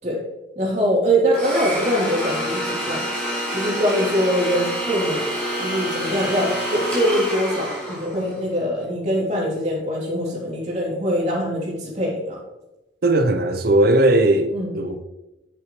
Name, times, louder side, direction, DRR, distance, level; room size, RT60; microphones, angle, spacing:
voice 1, 0.5-3.1 3.5-5.2 5.6-12.4 14.5-14.8, equal, 40° right, 3.3 m, -23 dB
Domestic sounds home sounds, 1.3-8.4, equal, 5° left, 3.4 m, -27 dB
voice 2, 13.0-14.5 14.7-15.0, right 2 dB, 55° right, 0.7 m, -17 dB
9.9 x 7.8 x 3.3 m
head